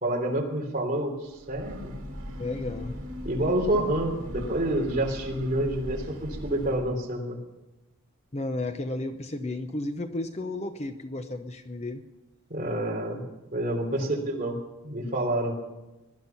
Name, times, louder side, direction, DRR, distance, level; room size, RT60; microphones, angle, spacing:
voice 1, 0.0-1.9 3.2-7.4 12.5-14.6 14.8-15.6, right 1 dB, 35° right, 0 dB, 3.1 m, -28 dB
Breathing / Train, 1.3-7.0, equal, 80° right, 2.4 m, -39 dB
voice 2, 2.4-3.0 8.3-12.0 13.9-14.1, left 2 dB, 30° left, 7 dB, 0.8 m, -33 dB
19.0 x 11.5 x 5.9 m, 1.0 s
head